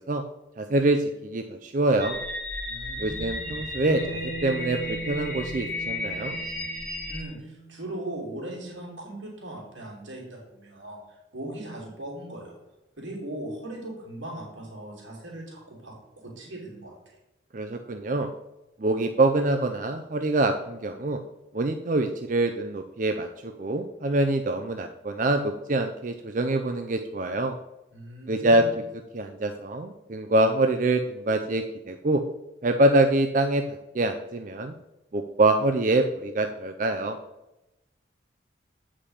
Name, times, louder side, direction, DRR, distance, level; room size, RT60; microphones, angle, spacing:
voice 1, 0.6-2.2 3.0-6.4 17.5-18.3 18.8-21.2 21.5-27.6 28.3-28.6 29.1-32.2 32.6-34.7 35.1-37.2, right 2 dB, 45° right, 5 dB, 0.5 m, -25 dB
sound 1, 2.0-7.2, left 2 dB, 10° left, 1.5 m, -34 dB
voice 2, 2.6-3.6 7.1-12.5 13.0-17.2 27.9-28.8, right 1 dB, 90° right, -3 dB, 3.0 m, -39 dB
Bass guitar, 3.9-8.3, right 2 dB, 60° left, 0.6 m, -39 dB
8.5 x 5.1 x 5.6 m, 0.96 s
head